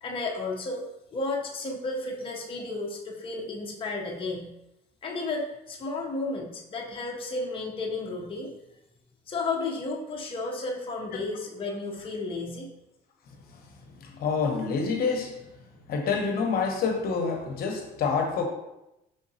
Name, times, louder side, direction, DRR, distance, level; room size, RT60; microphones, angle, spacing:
voice 1, 0.0-0.8 1.1-4.5 5.0-8.5 9.3-12.7, left 3 dB, 30° left, 0.7 m, -33 dB
voice 2, 13.9-15.5 15.9-18.5, left 5 dB, 65° left, 0.8 m, -27 dB
5.1 x 3.5 x 2.7 m
cardioid pair, 110°, 17 cm